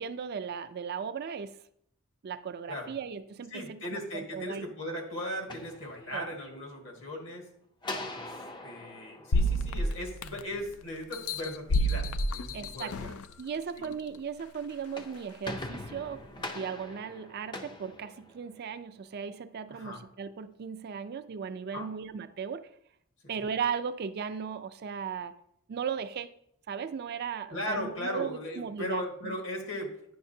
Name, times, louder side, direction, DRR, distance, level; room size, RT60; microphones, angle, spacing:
voice 1, 0.0-1.6 2.2-4.7 6.1-6.3 7.8-8.1 12.5-13.0 13.4-22.7 23.3-25.4 25.7-26.3 26.7-29.4, right 6 dB, 50° right, 10 dB, 0.4 m, -37 dB
voice 2, 3.5-7.5 8.0-8.3 8.6-13.2 19.7-20.0 21.7-21.9 23.2-23.4 27.5-29.9, left 1 dB, 65° left, 1 dB, 1.6 m, -38 dB
sound 1, 5.5-6.5 7.8-10.3 14.7-18.8, left 2 dB, 20° left, 0.5 m, -42 dB
sound 2, 9.3-10.6 11.1-13.3 13.8-13.9, equal, 85° left, 0.4 m, -29 dB
9.4 x 5.8 x 2.7 m, 0.71 s
head